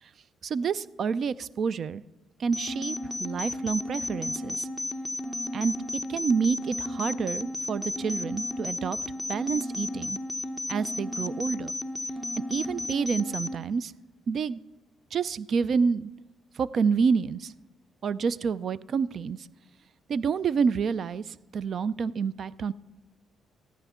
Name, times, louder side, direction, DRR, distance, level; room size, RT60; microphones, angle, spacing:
voice 1, 0.4-2.0 2.4-4.7 5.5-5.7 6.1-9.0 9.3-10.2 10.7-11.7 12.5-13.9 14.3-14.6 15.1-16.1 16.6-17.5 18.0-19.4 20.1-22.7, right 5 dB, 55° right, 19 dB, 0.4 m, -28 dB
sound 1, 2.5-13.5, left 2 dB, 5° left, 0.8 m, -33 dB
14.5 x 13.5 x 3.6 m, 1.1 s
cardioid pair, 90°, 0 cm